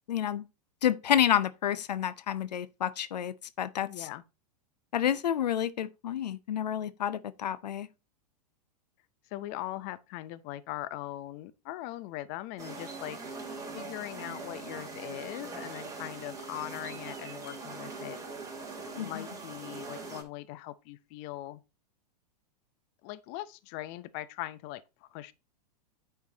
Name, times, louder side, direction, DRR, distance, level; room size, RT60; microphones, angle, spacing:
voice 1, 0.1-0.5 0.8-4.1 4.9-7.9 19.0-19.2, left 10 dB, 85° left, 0.6 m, -29 dB
voice 2, 3.8-4.2 9.3-13.2 13.7-18.2 19.0-21.6 23.0-25.3, left 15 dB, 45° left, 0.7 m, -40 dB
sound 1, 12.6-20.2, right 3 dB, 15° right, 3.0 m, -42 dB
9.4 x 4.7 x 3.9 m
hypercardioid pair, 110°, 21 cm